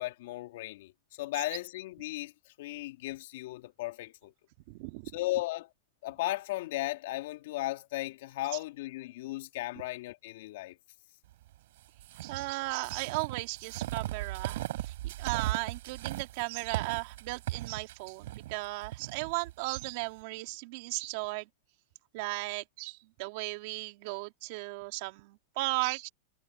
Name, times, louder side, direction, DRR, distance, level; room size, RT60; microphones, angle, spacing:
voice 1, 0.0-2.3 2.6-4.3 5.1-5.7 6.0-10.8, left 17 dB, 65° left, 3.5 m, -36 dB
voice 2, 4.7-5.1 12.2-21.5 22.1-26.1, right 23 dB, 50° right, 2.8 m, -36 dB
sound 1, 12.0-19.9, right 15 dB, 70° right, 5.7 m, -38 dB
supercardioid pair, 150°, 0 cm